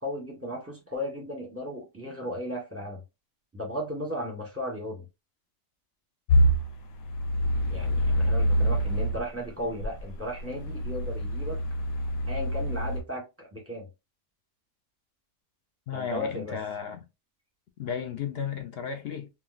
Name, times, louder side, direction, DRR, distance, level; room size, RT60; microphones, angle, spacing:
voice 1, 0.0-3.0 3.5-5.0 7.7-11.6 12.3-13.9 15.9-16.6, left 1 dB, 10° right, 0.8 m, -35 dB
sound 1, 6.3-9.2 9.8-13.0, equal, 85° left, 1.1 m, -26 dB
voice 2, 15.9-17.0 17.8-19.3, left 7 dB, 65° left, 0.6 m, -34 dB
3.7 x 2.3 x 2.3 m
omnidirectional pair, 1.4 m